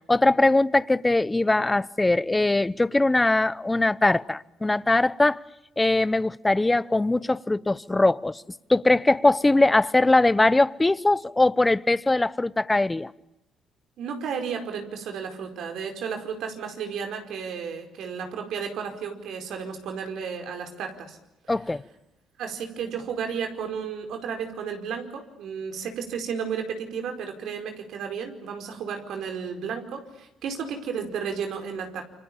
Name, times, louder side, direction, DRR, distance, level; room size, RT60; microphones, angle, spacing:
voice 1, 0.1-5.4 5.8-8.4 8.7-13.1 21.5-21.8, left 2 dB, 15° left, 0.9 m, -21 dB
voice 2, 14.0-21.2 21.4-21.5 22.4-32.0, right 6 dB, 75° right, 4.9 m, -33 dB
28.5 x 25.5 x 7.3 m
cardioid pair, 80°, 0 cm